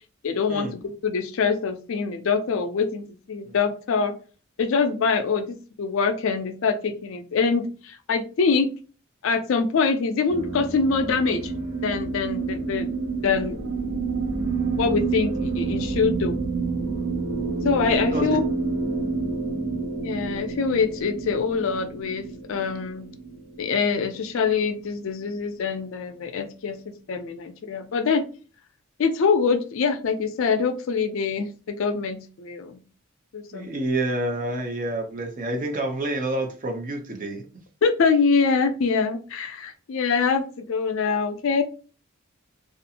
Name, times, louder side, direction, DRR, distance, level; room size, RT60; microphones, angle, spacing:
voice 1, 0.2-4.1 4.6-5.5 5.8-8.7 9.2-11.5 11.8-13.0 13.2-13.8 14.7-16.4 17.6-18.4 20.0-23.1 23.6-28.2 29.0-32.8 33.3-33.8 37.8-41.6, left 5 dB, 65° left, 8 dB, 0.4 m, -24 dB
sound 1, 10.3-24.9, right 4 dB, 90° right, 0.7 m, -29 dB
voice 2, 33.5-37.4, right 2 dB, 40° right, 3 dB, 0.5 m, -28 dB
2.5 x 2.4 x 2.7 m, 0.37 s
head